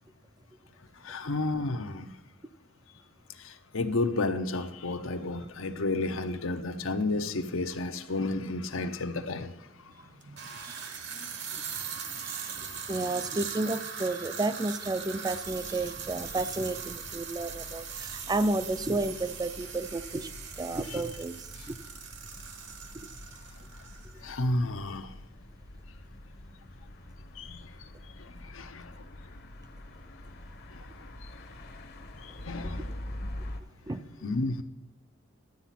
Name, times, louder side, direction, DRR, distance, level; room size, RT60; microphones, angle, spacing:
voice 1, 1.0-2.1 3.3-10.1 20.9-21.0 24.2-25.1 27.3-27.9 28.2-29.0 30.7-31.4 32.2-33.0 34.2-34.6, left 2 dB, 80° left, 8 dB, 0.9 m, -32 dB
sound 1, 7.0-7.1 8.1-8.2 10.2-24.3, right 6 dB, 60° right, 1.3 m, -40 dB
voice 2, 10.2-21.8 33.9-34.2, right 2 dB, 20° right, 13 dB, 0.5 m, -33 dB
sound 2, 15.4-33.6, left 1 dB, 55° left, 1.0 m, -46 dB
12.0 x 8.2 x 5.9 m, 1.0 s
head